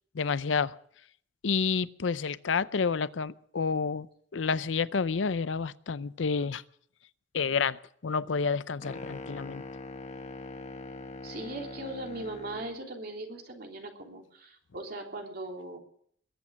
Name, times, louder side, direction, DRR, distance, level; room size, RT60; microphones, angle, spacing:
voice 1, 0.1-0.8 1.4-4.1 4.3-6.6 7.3-9.6, left 5 dB, 90° left, 17 dB, 0.6 m, -29 dB
sound 1, 8.8-12.7, left 2 dB, 40° left, 1.3 m, -42 dB
voice 2, 11.2-15.8, right 2 dB, 55° right, 2 dB, 3.3 m, -39 dB
21.5 x 8.5 x 7.6 m, 0.64 s
head